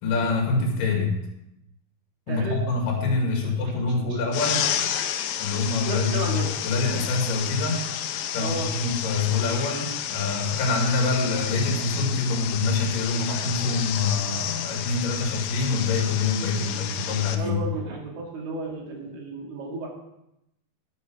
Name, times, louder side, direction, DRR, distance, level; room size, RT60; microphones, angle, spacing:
voice 1, 0.0-1.1 2.3-4.6 5.4-6.3 6.6-7.8 8.3-17.6, left 3 dB, 60° left, 1 dB, 3.7 m, -25 dB
voice 2, 3.4-4.2 5.8-6.5 8.4-8.7 12.3-12.5 17.3-19.9, right 3 dB, 80° right, -1 dB, 4.1 m, -33 dB
sound 1, 4.3-17.4, left 10 dB, 75° left, 2.3 m, -31 dB
10.0 x 10.0 x 4.7 m, 0.85 s
omnidirectional pair, 4.4 m